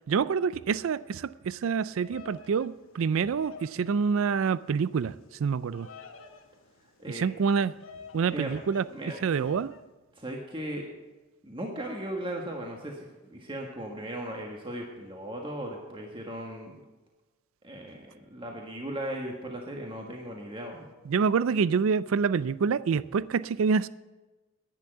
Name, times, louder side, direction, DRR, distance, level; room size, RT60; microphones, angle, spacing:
voice 1, 0.1-5.1 5.4-5.9 7.1-7.7 8.1-8.8 9.2-9.8 21.1-23.9, right 6 dB, 75° right, 18 dB, 0.4 m, -27 dB
Bird vocalization bird call bird song, 1.8-9.8, left 4 dB, 70° left, 1.1 m, -50 dB
voice 2, 8.9-9.5 10.1-10.8 11.4-16.8 17.6-20.9, right 1 dB, 25° right, 0 dB, 1.5 m, -37 dB
11.0 x 10.5 x 7.9 m, 1.2 s
head